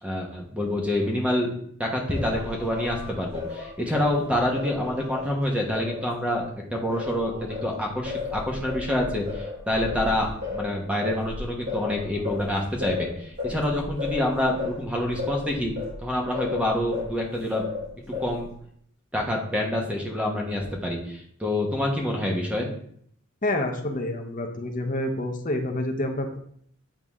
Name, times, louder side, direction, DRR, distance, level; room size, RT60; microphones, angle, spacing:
voice 1, 0.0-1.5 1.8-6.4 6.7-15.7 16.0-17.6 18.2-18.5 19.1-22.7, left 1 dB, 5° right, 0 dB, 1.2 m, -27 dB
Singing, 2.1-6.5 6.9-17.2 17.5-18.5, left 4 dB, 50° right, 2.8 m, -34 dB
voice 2, 23.4-26.4, left 1 dB, 35° left, 4 dB, 0.9 m, -28 dB
9.0 x 4.0 x 3.6 m, 0.65 s
head